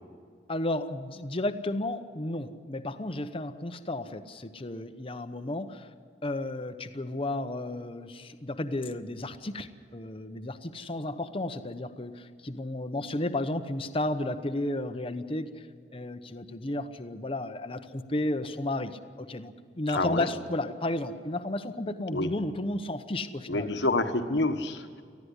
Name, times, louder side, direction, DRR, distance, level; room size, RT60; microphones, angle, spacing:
voice 1, 0.5-5.9 6.2-23.7, left 1 dB, 30° left, 9 dB, 0.9 m, -33 dB
voice 2, 19.9-20.3 22.1-22.3 23.5-25.0, left 2 dB, 75° left, 7 dB, 1.4 m, -28 dB
19.0 x 15.0 x 10.0 m, 2.2 s
head